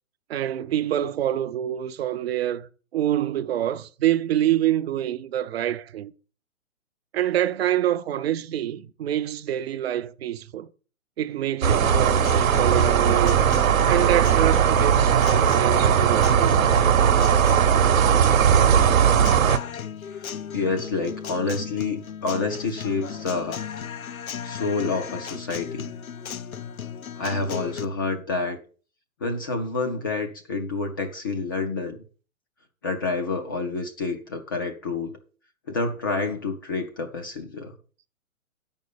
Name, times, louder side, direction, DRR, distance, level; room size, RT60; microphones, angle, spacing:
voice 1, 0.3-6.1 7.1-10.7 11.2-13.5 13.9-16.7, right 12 dB, 50° right, 0.6 m, -26 dB
sound 1, 11.6-19.6, right 8 dB, 75° right, 1.1 m, -18 dB
Guitar, 11.8-27.9, left 8 dB, 90° left, 0.8 m, -37 dB
voice 2, 20.2-23.6 24.4-25.9 27.2-28.6 29.2-32.0 32.8-35.1 35.7-37.7, left 3 dB, 15° left, 0.4 m, -28 dB
8.3 x 5.3 x 6.4 m
hypercardioid pair, 140°, 41 cm